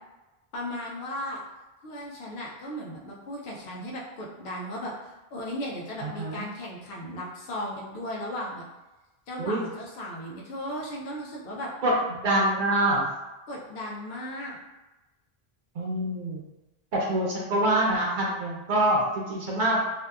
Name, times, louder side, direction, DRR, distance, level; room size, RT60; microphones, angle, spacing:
voice 1, 0.5-1.4 1.8-8.6 9.3-11.7 13.5-14.6, left 1 dB, 75° left, -3 dB, 0.8 m, -36 dB
voice 2, 6.0-6.4 9.4-9.6 11.8-11.9 12.2-13.0 15.8-16.4 16.9-19.8, right 1 dB, 60° right, -4 dB, 0.6 m, -25 dB
2.6 x 2.2 x 2.2 m, 1.1 s
omnidirectional pair, 1.1 m